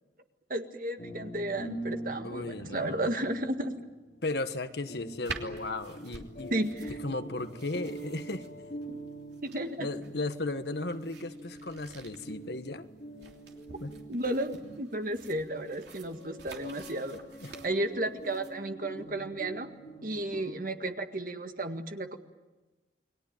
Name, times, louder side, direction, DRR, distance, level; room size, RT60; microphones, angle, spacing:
voice 1, 0.5-3.8 6.5-7.0 8.9-9.0 9.4-9.9 14.1-17.2 17.6-19.7 20.0-22.2, right 1 dB, 50° right, 6 dB, 1.9 m, -33 dB
sound 1, 1.0-20.5, right 1 dB, 45° left, 4.3 m, -44 dB
voice 2, 2.2-3.1 4.2-6.5 7.0-8.4 9.8-12.8 13.8-14.0 17.4-17.5, left 2 dB, 60° left, 9 dB, 1.4 m, -35 dB
sound 2, 5.2-18.5, right 4 dB, 65° right, 3.2 m, -48 dB
29.5 x 21.5 x 9.1 m, 1.2 s
head